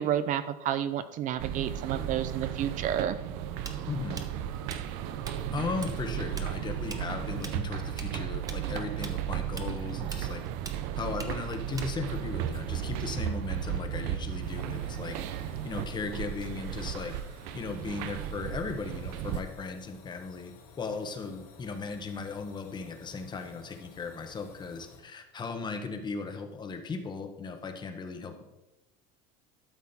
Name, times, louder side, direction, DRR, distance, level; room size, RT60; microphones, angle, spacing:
voice 1, 0.0-3.2, right 10 dB, 45° right, 12 dB, 0.5 m, -30 dB
sound 1, 1.4-19.4, right 10 dB, 75° right, 0.8 m, -35 dB
Tools, 3.7-5.4 5.6-6.0 6.2-12.3, right 4 dB, 20° right, 0.9 m, -43 dB
voice 2, 3.9-4.2 5.5-10.4 11.0-15.2 15.6-17.1 17.5-20.5 20.8-28.4, left 4 dB, 25° left, 6 dB, 1.1 m, -37 dB
little gaz pipeline, 14.4-25.0, left 4 dB, 75° left, 3.1 m, -54 dB
12.5 x 6.2 x 4.3 m, 1.0 s
cardioid pair, 140°, 19 cm